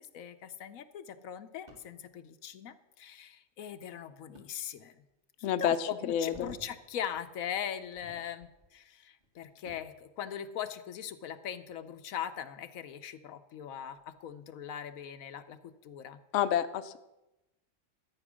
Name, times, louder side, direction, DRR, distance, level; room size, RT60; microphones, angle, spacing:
voice 1, 0.1-5.1 5.4-16.2, left 9 dB, 85° left, 10 dB, 1.2 m, -40 dB
sound 1, 1.7-2.0 4.3-4.5 5.1-5.2 6.0-6.7 7.1-7.3 7.8-8.7 9.1-10.0 11.6-12.7 13.2-13.3 14.0-14.3, right 1 dB, 30° right, 2.2 m, -56 dB
voice 2, 5.4-6.5 16.3-17.0, left 9 dB, 70° left, 10 dB, 0.9 m, -29 dB
13.0 x 9.0 x 6.2 m, 0.98 s
omnidirectional pair, 1.4 m